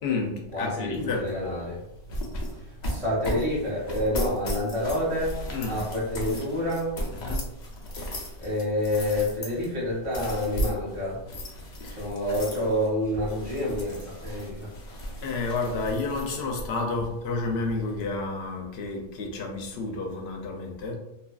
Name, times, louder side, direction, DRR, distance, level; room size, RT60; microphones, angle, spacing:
voice 1, 0.0-1.2 5.5-5.8 7.1-7.4 11.8-12.1 15.2-20.9, left 3 dB, 85° left, 0.8 m, -30 dB
voice 2, 0.5-1.8 2.9-6.9 8.4-11.2 11.9-14.7, left 1 dB, 30° right, 1.1 m, -28 dB
sound 1, 0.9-18.1, equal, 50° left, 0.6 m, -36 dB
2.7 x 2.5 x 2.3 m
omnidirectional pair, 1.0 m